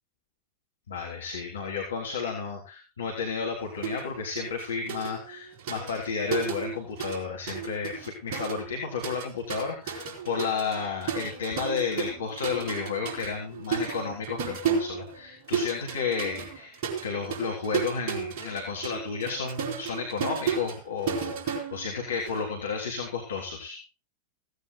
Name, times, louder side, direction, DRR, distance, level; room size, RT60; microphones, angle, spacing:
voice 1, 0.9-16.8 17.0-23.8, left 5 dB, 65° left, 0 dB, 3.6 m, -32 dB
sound 1, 3.8-4.1 4.4-7.2 7.5-22.4, right 6 dB, 45° right, 4.5 m, -34 dB
17.0 x 16.5 x 2.2 m, 0.30 s
figure-of-eight pair, 90°, 0 cm